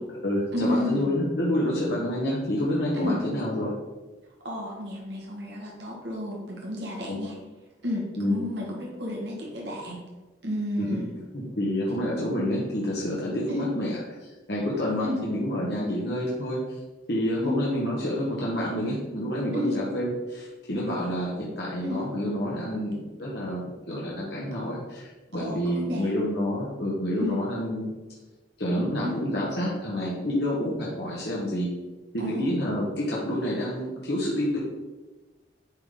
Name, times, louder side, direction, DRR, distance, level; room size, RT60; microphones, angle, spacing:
voice 1, 0.0-3.7 7.1-7.2 8.2-8.4 10.8-10.9 11.3-13.9 14.2-16.6 17.1-27.9 28.6-31.7 32.1-34.6, equal, 60° left, -5 dB, 1.3 m, -28 dB
voice 2, 0.5-1.1 2.9-3.2 4.4-7.4 7.8-10.0 10.4-11.1 13.5-13.7 15.0-15.2 17.4-17.6 19.5-19.7 21.8-22.0 25.3-26.1 27.2-27.4 29.0-29.1 32.2-32.6, left 1 dB, 65° right, -3 dB, 1.5 m, -31 dB
8.9 x 3.8 x 3.7 m, 1.2 s
head